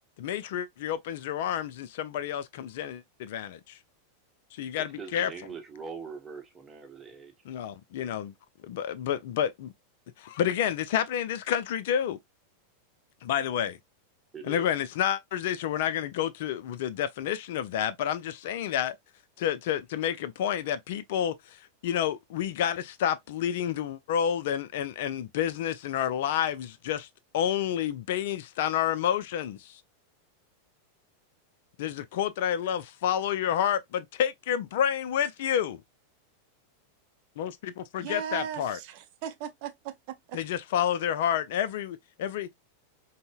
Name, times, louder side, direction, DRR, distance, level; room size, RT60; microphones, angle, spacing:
voice 1, 0.2-3.8 4.5-5.3 7.4-8.3 8.6-9.7 10.2-12.2 13.2-13.8 14.4-19.0 19.4-27.1 27.3-29.8 31.8-35.8 37.4-38.8 40.3-42.5, left 9 dB, 55° left, 0.4 m, -29 dB
voice 2, 5.0-7.3 14.3-14.7, right 5 dB, 15° right, 0.9 m, -42 dB
voice 3, 38.0-40.0 40.3-40.4, right 9 dB, 45° right, 0.6 m, -37 dB
5.3 x 2.1 x 2.3 m
figure-of-eight pair, 90°, 0 cm